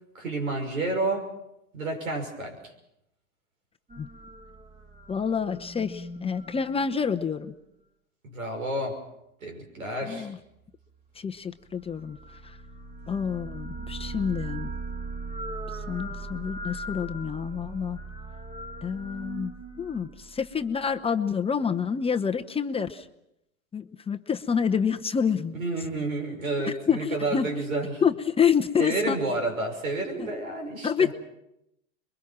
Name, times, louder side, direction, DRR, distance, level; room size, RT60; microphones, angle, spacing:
voice 1, 0.1-1.3 1.7-2.7 8.2-9.0 9.4-10.3 25.5-28.0 28.8-31.1, right 2 dB, 90° right, 4 dB, 6.0 m, -30 dB
sound 1, 3.9-7.5 11.7-21.0, right 2 dB, 20° right, 2.6 m, -39 dB
voice 2, 5.1-7.5 10.1-10.4 11.2-12.2 12.4-12.6 13.1-14.7 15.7-18.0 18.8-23.1 23.7-25.6 26.9-27.5 28.0-29.2 30.2-30.3 30.8-31.1, left 7 dB, 15° left, 7 dB, 0.8 m, -28 dB
26.5 x 22.5 x 6.0 m, 0.82 s
hypercardioid pair, 110°, 40 cm